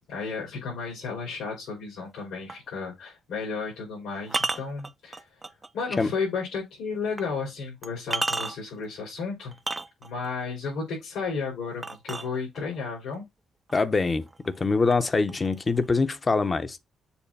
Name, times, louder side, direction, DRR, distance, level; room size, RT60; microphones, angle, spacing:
voice 1, 0.1-5.4 5.7-9.5 10.0-13.2, left 5 dB, 85° left, 3.8 m, -33 dB
sound 1, 2.5-2.7 4.3-5.7 6.2-6.3 7.2-7.3 7.8-8.8 9.5-10.3 11.8-12.8 13.7-13.8 14.2-14.6 14.9-15.9, right 3 dB, 25° right, 0.4 m, -32 dB
voice 2, 13.7-16.8, left 4 dB, 30° left, 0.7 m, -24 dB
7.1 x 2.5 x 5.3 m
cardioid pair, 90°, 0 cm